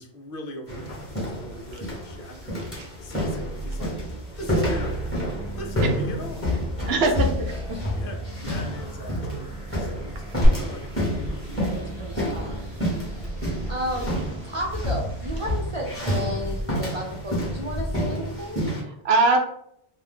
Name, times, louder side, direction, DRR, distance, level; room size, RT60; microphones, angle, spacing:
voice 1, 0.0-2.6 3.0-3.9 4.4-5.1 5.6-7.3 7.9-9.5 9.8-10.9 11.6-11.9 12.4-12.5 12.8-13.0, left 1 dB, 65° left, 3 dB, 0.7 m, -41 dB
sound 1, 0.7-18.8, left 1 dB, 15° left, 1.0 m, -29 dB
sound 2, 3.1-16.3, right 3 dB, 35° right, 0.9 m, -37 dB
Glass, 10.4-18.4, equal, 10° right, 0.9 m, -29 dB
voice 2, 11.7-12.7 13.7-14.1 14.4-18.6, equal, 50° right, -3 dB, 0.4 m, -33 dB
voice 3, 18.6-19.4, right 3 dB, 80° right, 3 dB, 0.8 m, -22 dB
2.5 x 2.2 x 3.5 m, 0.70 s
omnidirectional pair, 1.0 m